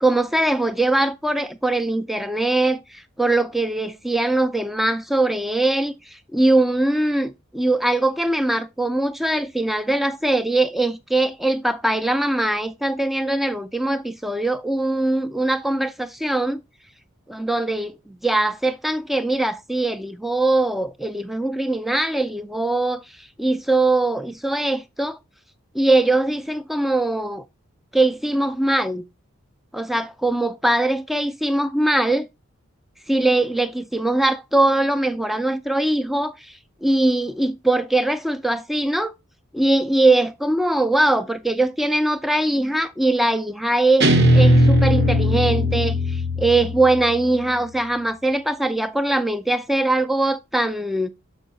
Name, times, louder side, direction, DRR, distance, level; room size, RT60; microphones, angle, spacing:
voice 1, 0.0-16.6 17.3-25.2 25.7-27.4 27.9-29.0 29.7-32.3 33.1-39.1 39.5-51.1, right 2 dB, ahead, 0.4 m, -21 dB
Guitar, 44.0-47.2, equal, 50° right, 0.9 m, -18 dB
6.4 x 5.6 x 3.9 m
head